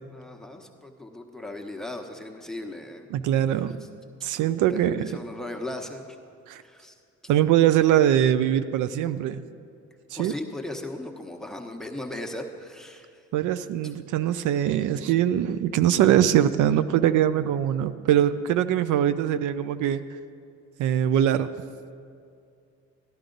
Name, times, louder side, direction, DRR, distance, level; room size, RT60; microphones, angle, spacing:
voice 1, 0.1-3.1 4.7-6.2 6.6-6.9 10.2-13.1, left 1 dB, ahead, 4 dB, 1.0 m, -37 dB
voice 2, 3.1-3.8 4.2-5.1 6.5-6.6 7.3-9.4 10.1-10.3 13.3-20.0 20.8-21.5, right 11 dB, 85° right, 12 dB, 0.5 m, -22 dB
13.5 x 11.0 x 3.9 m, 2.3 s
cardioid pair, 90°, 30 cm